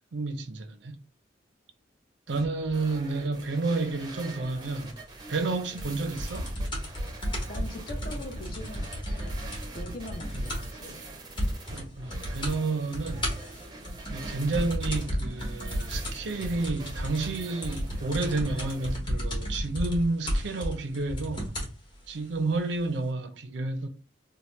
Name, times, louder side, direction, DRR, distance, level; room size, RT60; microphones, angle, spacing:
voice 1, 0.1-1.0 2.3-5.0 5.3-6.5 10.3-10.7 11.7-13.3 14.1-21.5 22.1-23.9, right 3 dB, 75° right, 0.5 m, -30 dB
sound 1, 2.3-19.0, right 3 dB, 25° right, 0.5 m, -45 dB
sound 2, 5.8-10.8 11.1-11.2 11.4-11.8 12.1-12.6 12.9-21.8 22.6-22.7, equal, 25° left, 0.9 m, -33 dB
voice 2, 7.5-9.5 9.7-11.0, left 1 dB, 50° left, 0.6 m, -42 dB
2.8 x 2.1 x 3.2 m
head